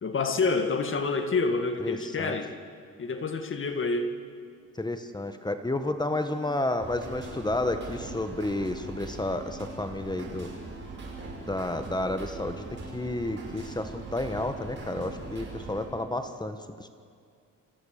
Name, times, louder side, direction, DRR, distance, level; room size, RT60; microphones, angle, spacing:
voice 1, 0.0-2.5 3.0-4.2, left 3 dB, 40° left, 7 dB, 1.8 m, -28 dB
voice 2, 1.8-2.4 4.8-10.5 11.5-12.7 12.9-16.9, left 2 dB, 15° left, 8 dB, 1.3 m, -31 dB
sound 1, 6.1-15.9, right 3 dB, 40° right, 5.5 m, -41 dB
26.0 x 15.5 x 6.7 m, 2.3 s
cardioid pair, 90°, 30 cm